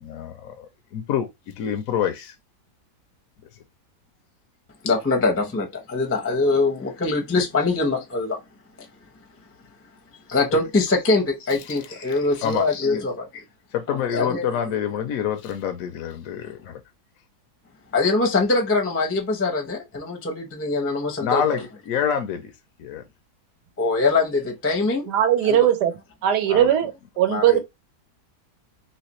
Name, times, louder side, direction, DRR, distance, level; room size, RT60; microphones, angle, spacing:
voice 1, 0.0-0.7 0.9-1.3 1.6-2.3 12.4-12.7 12.9-13.0 13.7-16.8 21.2-22.5 22.8-23.0 26.5-26.7, left 8 dB, 70° left, 0.9 m, -26 dB
voice 2, 4.8-8.4 10.3-13.4 13.9-14.5 17.9-21.6 23.8-25.1 25.4-25.6 27.3-27.6, left 3 dB, 15° left, 0.4 m, -23 dB
voice 3, 25.1-25.9 26.2-26.9 27.2-27.6, right 11 dB, 80° right, 1.3 m, -19 dB
3.3 x 3.0 x 2.9 m
omnidirectional pair, 1.8 m